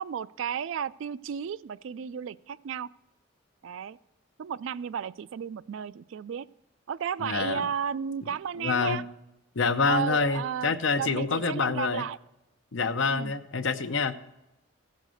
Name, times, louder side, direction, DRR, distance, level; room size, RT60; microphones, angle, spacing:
voice 1, 0.0-2.9 3.6-4.0 4.4-6.5 6.9-9.0 9.9-12.2 13.1-13.3, right 7 dB, 65° right, 17 dB, 0.3 m, -33 dB
voice 2, 7.2-7.6 8.6-9.0 9.6-12.0 12.7-14.1, left 4 dB, 65° left, 10 dB, 0.7 m, -27 dB
15.5 x 6.6 x 6.3 m, 0.92 s
head